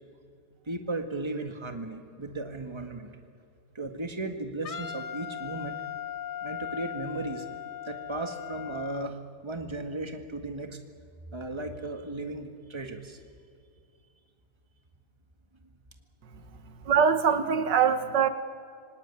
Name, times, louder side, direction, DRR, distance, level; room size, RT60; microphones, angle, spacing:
voice 1, 0.7-3.1 3.8-5.8 6.4-7.5 7.9-10.8 11.3-13.2, right 2 dB, 15° right, 6 dB, 1.7 m, -36 dB
Wind instrument woodwind instrument, 4.6-9.1, left 10 dB, 50° left, 0.6 m, -38 dB
voice 2, 16.9-18.3, right 7 dB, 80° right, 11 dB, 1.8 m, -23 dB
26.5 x 19.0 x 9.8 m, 2.3 s
omnidirectional pair, 1.9 m